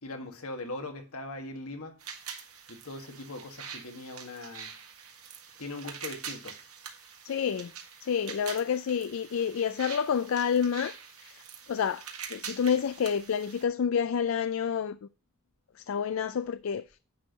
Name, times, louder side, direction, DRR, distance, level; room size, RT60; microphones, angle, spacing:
voice 1, 0.0-2.0 2.7-4.7 5.6-6.5, left 2 dB, 80° left, 1.6 m, -40 dB
sound 1, 2.0-13.6, right 7 dB, 85° right, 1.7 m, -45 dB
voice 2, 7.2-7.7 8.0-11.4 11.7-12.0 12.3-15.0 15.9-16.9, left 7 dB, 65° left, 0.3 m, -29 dB
10.5 x 4.5 x 5.2 m
head